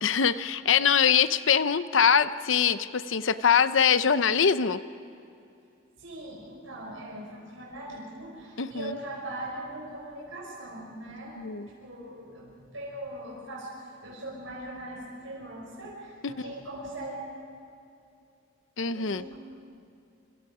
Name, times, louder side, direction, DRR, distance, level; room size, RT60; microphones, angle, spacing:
voice 1, 0.0-4.8 8.6-9.0 11.4-11.7 16.4-16.5 18.8-19.2, left 7 dB, 70° left, 13 dB, 0.7 m, -23 dB
voice 2, 6.0-11.4 11.8-17.2 18.9-19.4, right 1 dB, 80° right, -4 dB, 5.5 m, -40 dB
26.5 x 26.5 x 5.0 m, 2.6 s
head